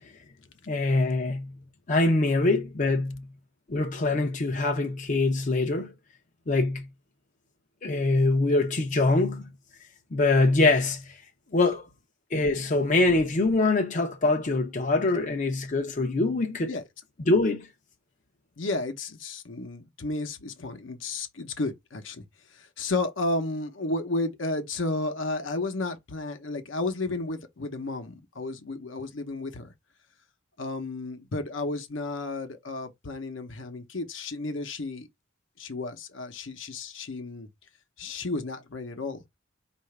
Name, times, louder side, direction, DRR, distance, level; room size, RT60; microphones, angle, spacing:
voice 1, 0.7-1.5 1.9-3.2 3.7-5.9 6.5-6.8 7.8-9.5 10.1-11.0 11.5-11.8 12.3-16.7 17.3-17.7, left 2 dB, 40° left, 0.6 m, -24 dB
voice 2, 18.6-22.2 22.5-29.7 30.6-35.1 35.6-37.5 38.0-39.2, left 2 dB, 75° left, 0.8 m, -32 dB
4.8 x 2.5 x 3.2 m
head